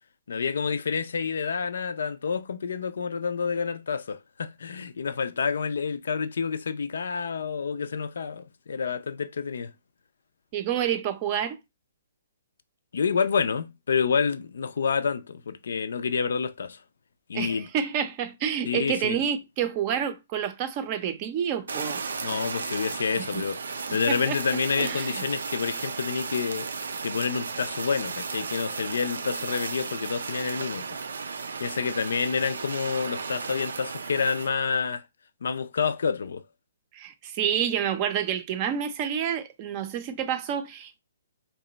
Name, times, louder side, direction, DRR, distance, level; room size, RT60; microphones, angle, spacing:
voice 1, 0.3-9.7 12.9-16.8 17.3-17.7 18.6-19.2 22.2-26.7 27.0-30.9 31.6-35.0 35.4-36.4, left 6 dB, 75° left, 0.4 m, -28 dB
voice 2, 10.5-11.6 17.3-22.0 23.2-23.3 23.9-24.4 24.8-25.2 36.9-41.0, right 8 dB, 30° right, 0.5 m, -29 dB
Fire, 21.7-34.5, right 5 dB, 90° right, 0.4 m, -34 dB
2.9 x 2.2 x 3.9 m
hypercardioid pair, 155°, 0 cm